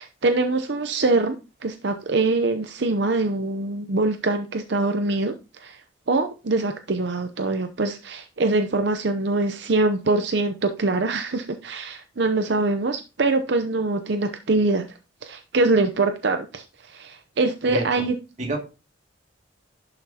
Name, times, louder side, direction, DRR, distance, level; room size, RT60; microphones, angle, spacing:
voice 1, 0.0-1.4 1.6-5.4 5.6-5.8 6.1-14.8 15.2-18.1, right 3 dB, 60° right, 7 dB, 0.7 m, -23 dB
voice 2, 17.6-18.1 18.4-18.6, right 1 dB, 40° right, 1 dB, 2.3 m, -28 dB
11.5 x 6.0 x 2.8 m, 0.30 s
head